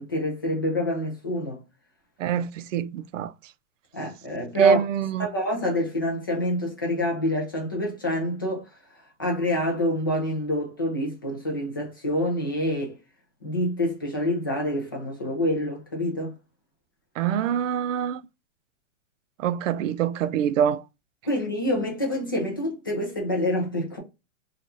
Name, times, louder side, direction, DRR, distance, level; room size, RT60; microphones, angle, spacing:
voice 1, 0.0-1.6 3.9-4.8 5.2-8.6 9.2-12.9 13.4-16.3 21.2-24.0, left 1 dB, 20° left, 0.3 m, -27 dB
voice 2, 2.2-3.3 4.6-5.3 17.2-18.2 19.4-20.8, right 8 dB, 75° right, 0.5 m, -24 dB
3.2 x 2.4 x 2.6 m
hypercardioid pair, 160°, 38 cm